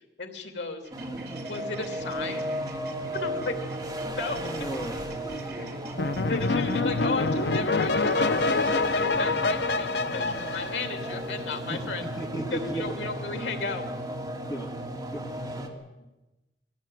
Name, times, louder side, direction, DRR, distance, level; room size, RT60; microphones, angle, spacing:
voice 1, 0.2-0.8 1.4-2.5 3.1-3.5 4.1-4.5 5.6-5.7 6.2-12.0 12.5-13.8, left 3 dB, 85° left, 5 dB, 3.1 m, -34 dB
sound 1, 0.8-11.4, right 2 dB, 65° right, 4.6 m, -48 dB
sound 2, 0.9-15.7, right 1 dB, 20° right, 2.5 m, -35 dB
voice 2, 4.4-5.5 11.7-12.9 14.5-14.7 15.1-15.2, right 1 dB, 20° left, 2 dB, 1.8 m, -35 dB
sound 3, 6.0-11.4, left 3 dB, 70° left, 0.8 m, -26 dB
22.5 x 16.0 x 9.2 m, 1.0 s
head